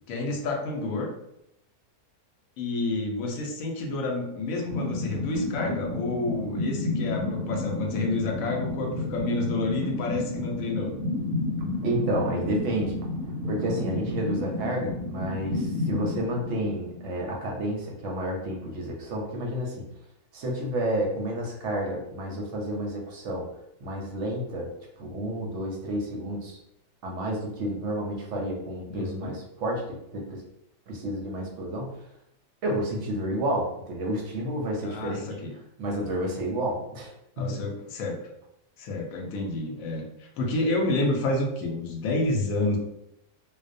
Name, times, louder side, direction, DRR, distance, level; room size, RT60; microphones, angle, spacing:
voice 1, 0.1-1.1 2.6-10.9 28.9-29.3 34.8-35.5 37.4-38.1 38.8-42.8, left 2 dB, 70° left, 1 dB, 0.9 m, -29 dB
sound 1, 4.7-17.4, left 2 dB, 85° right, 1.1 m, -31 dB
voice 2, 11.8-13.0 13.5-19.8 20.3-23.4 23.8-24.7 25.0-26.6 27.0-30.4 30.9-32.1 32.6-35.4 35.8-37.6, right 1 dB, 65° right, -1 dB, 0.8 m, -30 dB
2.4 x 2.0 x 2.5 m, 0.79 s
omnidirectional pair, 1.6 m